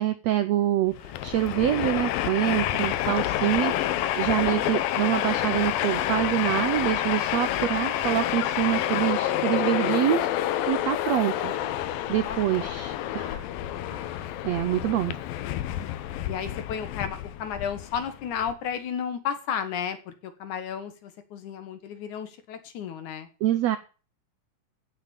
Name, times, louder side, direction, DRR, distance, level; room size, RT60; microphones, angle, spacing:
voice 1, 0.0-11.5 12.1-13.5 13.9-15.2 23.4-23.8, right 12 dB, 90° right, 11 dB, 1.5 m, -26 dB
Train, 0.9-18.5, left 12 dB, 90° left, 2.6 m, -28 dB
voice 2, 16.3-23.3, left 8 dB, 65° left, 10 dB, 2.7 m, -33 dB
15.0 x 6.9 x 6.9 m, 0.36 s
omnidirectional pair, 4.0 m